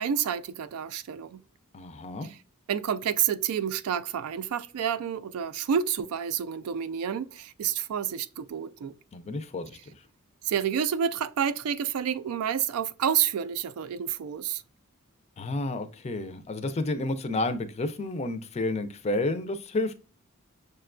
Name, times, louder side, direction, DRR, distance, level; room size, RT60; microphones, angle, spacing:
voice 1, 0.0-1.4 2.7-8.9 10.4-14.6, right 8 dB, 85° right, 0.3 m, -29 dB
voice 2, 1.7-2.3 9.1-9.8 15.4-19.9, left 2 dB, 30° left, 0.4 m, -30 dB
6.5 x 2.2 x 2.4 m
head